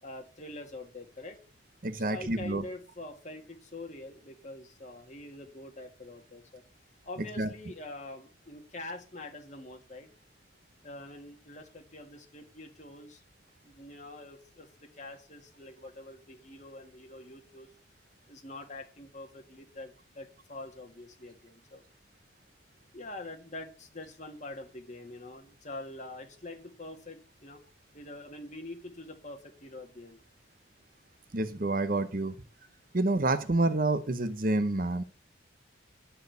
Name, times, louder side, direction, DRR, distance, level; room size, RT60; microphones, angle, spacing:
voice 1, 0.0-1.4 2.0-6.6 7.0-10.1 10.8-13.2 13.6-14.7 14.9-17.7 18.3-21.8 22.9-27.6 27.9-30.2, left 2 dB, 35° left, 3 dB, 2.0 m, -45 dB
voice 2, 1.8-2.6 7.4-7.5 31.3-32.4 32.9-35.0, right 2 dB, 45° right, 11 dB, 0.8 m, -28 dB
11.5 x 4.6 x 8.0 m, 0.38 s
head